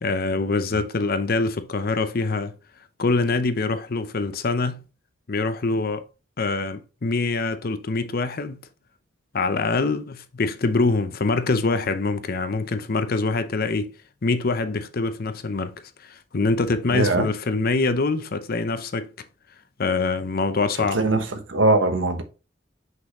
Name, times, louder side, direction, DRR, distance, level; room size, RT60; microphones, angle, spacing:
voice 1, 0.0-2.5 3.0-4.8 5.3-6.0 6.4-8.7 9.3-14.0 14.2-19.1 19.8-21.0, left 3 dB, 50° left, 0.7 m, -24 dB
voice 2, 16.9-17.3 20.9-22.2, right 2 dB, 80° right, 1.1 m, -21 dB
6.2 x 5.5 x 3.1 m
head